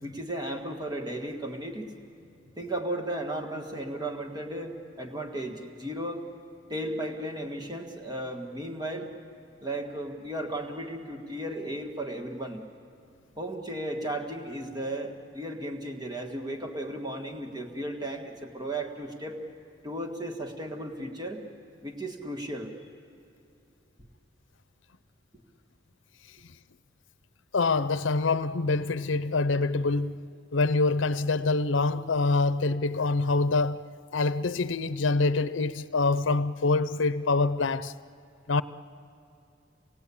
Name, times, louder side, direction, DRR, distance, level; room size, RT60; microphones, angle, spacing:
voice 1, 0.0-1.9 2.6-6.2 6.7-9.1 9.6-12.6 13.4-19.4 19.8-21.4 21.8-22.7, right 1 dB, 20° right, 1.8 m, -35 dB
voice 2, 27.5-30.2 30.5-33.9 34.1-37.9 38.5-38.6, left 3 dB, 85° left, 0.7 m, -25 dB
28.5 x 20.0 x 8.5 m
head